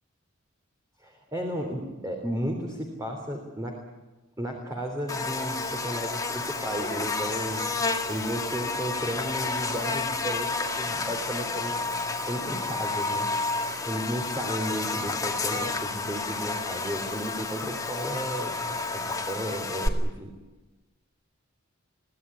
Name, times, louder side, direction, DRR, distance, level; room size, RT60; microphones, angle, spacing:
voice 1, 1.0-3.9 4.4-7.7 8.1-11.7 12.3-13.4 13.8-18.5 18.9-20.3, right 1 dB, 15° right, 2 dB, 3.5 m, -34 dB
Buzz, 5.1-19.9, left 3 dB, 15° left, 2.0 m, -30 dB
23.5 x 17.5 x 10.0 m, 1.2 s
head